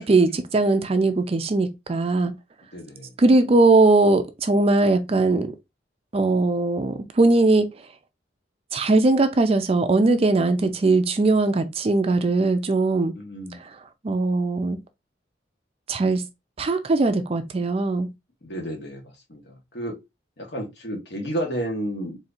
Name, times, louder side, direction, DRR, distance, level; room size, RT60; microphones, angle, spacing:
voice 1, 0.0-2.3 3.2-5.5 6.1-7.7 8.7-13.1 14.0-14.8 15.9-16.3 16.6-18.1, right 2 dB, 35° right, 0.4 m, -20 dB
voice 2, 2.7-3.1 13.1-13.6 18.4-19.0 19.3-20.0 20.4-22.2, right 1 dB, 65° left, 1.3 m, -31 dB
4.2 x 2.7 x 2.5 m
head